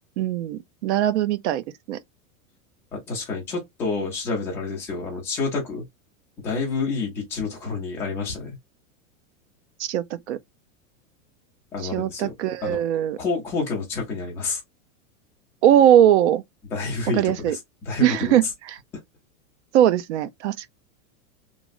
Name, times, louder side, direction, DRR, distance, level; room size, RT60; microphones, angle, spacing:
voice 1, 0.2-2.0 9.8-10.4 11.8-13.2 15.6-16.4 17.2-17.6 18.0-18.8 19.7-20.7, right 11 dB, 55° right, 0.5 m, -20 dB
voice 2, 2.9-5.8 6.4-8.6 11.7-12.3 12.6-14.6 16.7-18.4, left 4 dB, 5° left, 0.4 m, -29 dB
3.0 x 2.6 x 2.4 m
supercardioid pair, 175°, 41 cm